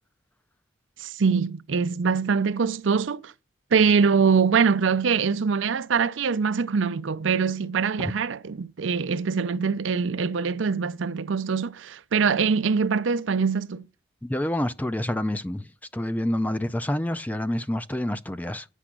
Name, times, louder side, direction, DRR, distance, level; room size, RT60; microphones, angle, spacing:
voice 1, 1.0-3.3 3.7-13.9, right 5 dB, 85° right, 0.5 m, -23 dB
voice 2, 14.2-15.7 15.9-18.7, left 1 dB, 10° left, 0.4 m, -27 dB
9.9 x 6.1 x 6.0 m
head